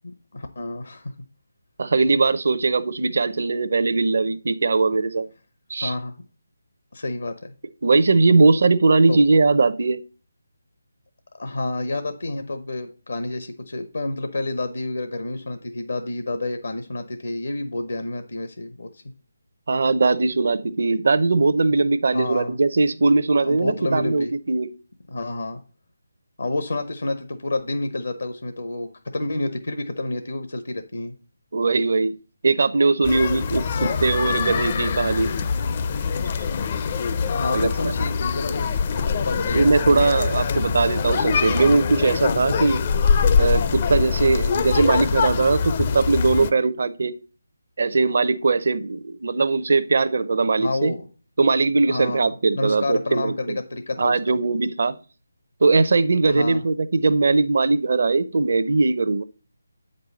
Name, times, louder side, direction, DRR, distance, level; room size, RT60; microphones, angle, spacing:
voice 1, 0.3-1.1 5.8-6.2 6.9-7.4 9.1-9.2 11.4-19.0 22.1-22.6 23.4-24.3 25.1-25.6 26.4-31.1 33.5-34.0 37.3-39.7 44.2-44.4 50.6-51.1 51.9-54.4 56.3-56.6, left 2 dB, 70° left, 0.9 m, -29 dB
voice 2, 1.8-5.3 5.7-5.9 7.8-10.0 19.7-24.7 31.5-32.1 32.4-35.3 37.5-37.7 39.5-42.8 43.4-47.1 47.8-50.9 51.4-53.6 54.0-54.9 55.6-59.2, right 3 dB, 55° right, 0.6 m, -20 dB
sound 1, 33.0-46.5, left 6 dB, 35° left, 0.5 m, -23 dB
8.1 x 5.4 x 4.1 m
figure-of-eight pair, 155°, 0 cm